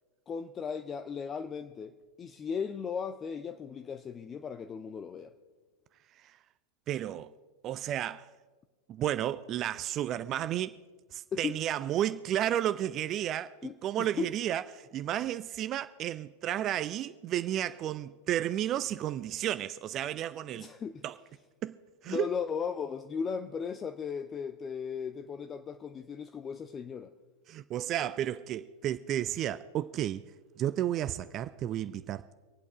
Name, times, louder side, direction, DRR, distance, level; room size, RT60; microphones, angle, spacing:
voice 1, 0.3-5.3 11.3-11.6 13.6-14.3 20.6-21.0 22.1-27.1, left 6 dB, 20° left, 0.5 m, -36 dB
voice 2, 6.9-7.3 7.6-8.3 8.9-10.7 11.1-20.7 21.0-21.2 21.6-21.7 22.0-22.3 27.5-30.2 30.6-32.3, right 12 dB, 35° right, 0.4 m, -32 dB
24.5 x 8.4 x 5.0 m
figure-of-eight pair, 90°, 0 cm